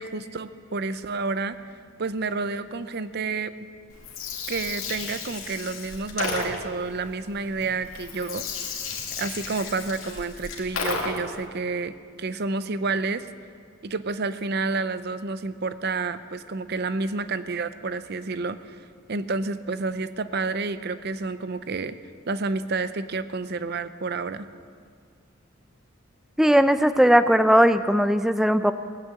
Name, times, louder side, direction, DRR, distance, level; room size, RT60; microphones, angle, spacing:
voice 1, 0.0-1.7 2.0-3.5 4.5-8.8 9.2-13.3 13.8-18.8 19.1-22.0 22.3-24.5, right 3 dB, 50° right, 13 dB, 0.6 m, -30 dB
Gurgling, 3.9-11.4, left 4 dB, 80° left, 2.4 m, -34 dB
voice 2, 26.4-28.7, equal, ahead, 11 dB, 0.4 m, -18 dB
18.0 x 9.4 x 7.6 m, 2.1 s
head